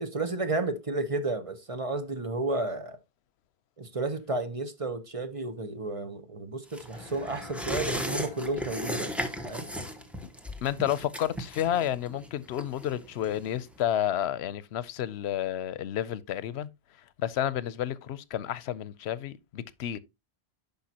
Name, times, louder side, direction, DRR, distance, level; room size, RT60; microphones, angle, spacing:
voice 1, 0.0-3.0 3.8-9.1 9.4-9.7, right 2 dB, 35° right, 0.8 m, -32 dB
sound 1, 6.7-13.8 14.1-14.2, equal, ahead, 1.0 m, -36 dB
Bowed string instrument, 6.9-11.3, left 5 dB, 30° left, 0.6 m, -49 dB
voice 2, 10.6-16.7 17.2-20.0, left 11 dB, 90° left, 0.8 m, -31 dB
10.5 x 5.5 x 2.8 m
omnidirectional pair, 1.1 m